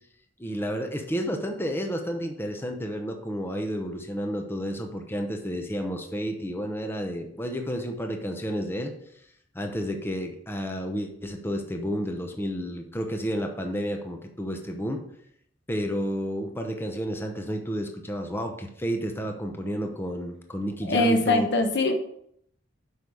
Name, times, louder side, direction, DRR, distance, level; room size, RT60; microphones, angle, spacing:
voice 1, 0.4-8.9 9.5-15.0 15.7-21.5, equal, 10° left, 4 dB, 0.8 m, -31 dB
voice 2, 20.9-21.9, left 2 dB, 65° left, 6 dB, 1.1 m, -22 dB
8.1 x 5.6 x 4.8 m, 0.71 s
head